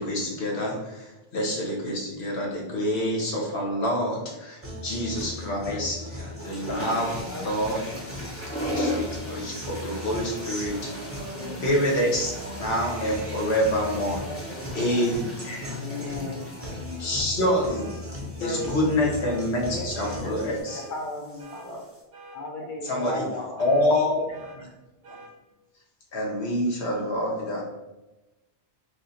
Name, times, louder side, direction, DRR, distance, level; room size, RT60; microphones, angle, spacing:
voice 1, 0.0-7.1 7.4-7.9 8.7-10.9 11.4-14.2 14.7-15.8 17.0-17.9 18.4-20.8 22.8-23.3 23.6-24.2 24.6-24.7 25.1-25.2 26.1-27.6, equal, 75° left, -1 dB, 1.2 m, -27 dB
Guitar, 4.6-20.6, left 1 dB, 15° right, 0.9 m, -37 dB
sound 1, 5.2-5.5 6.2-22.0, left 1 dB, 15° left, 0.8 m, -39 dB
voice 2, 5.3-5.9 7.2-7.4 7.9-8.1 10.7-11.6 14.1-15.1 15.8-17.1 18.4-18.8 19.6-20.6 20.9-21.5 22.3-23.5, left 2 dB, 55° left, 0 dB, 0.6 m, -37 dB
voice 3, 13.8-14.9 15.4-16.9 18.0-18.4 19.8-20.7 21.5-21.9 23.4-24.1 24.6-24.7, right 1 dB, 40° right, -4 dB, 0.6 m, -45 dB
sound 2, 17.7-18.0 18.5-18.7 19.2-19.5 19.9-20.2 20.7-20.9 21.4-21.7 22.1-22.4 22.8-23.1 23.6-23.8 24.3-24.6 25.0-25.3, right 2 dB, 60° right, 1.0 m, -46 dB
3.2 x 2.5 x 4.1 m, 1.0 s
omnidirectional pair, 1.1 m